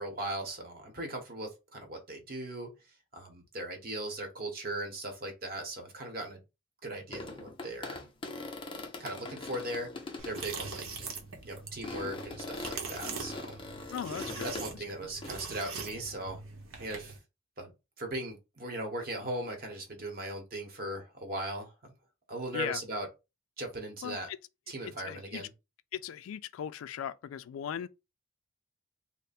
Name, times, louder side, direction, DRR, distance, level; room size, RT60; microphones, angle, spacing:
voice 1, 0.0-2.7 3.1-6.4 6.8-8.1 9.0-9.9 10.2-11.1 11.4-13.6 14.4-16.4 16.8-17.2 17.6-17.7 18.0-21.9 22.3-23.1 23.6-24.3 24.7-25.5, right 1 dB, 45° right, 1.0 m, -38 dB
sound 1, 7.1-10.5 11.0-11.2 11.8-14.7 15.2-15.3, left 2 dB, 25° left, 0.5 m, -41 dB
sound 2, 10.2-17.2, right 4 dB, 90° right, 0.8 m, -42 dB
voice 2, 13.9-14.6 22.5-22.8 24.0-24.4 24.8-25.5 25.9-27.9, left 9 dB, 90° left, 0.3 m, -38 dB
3.2 x 2.1 x 4.0 m
head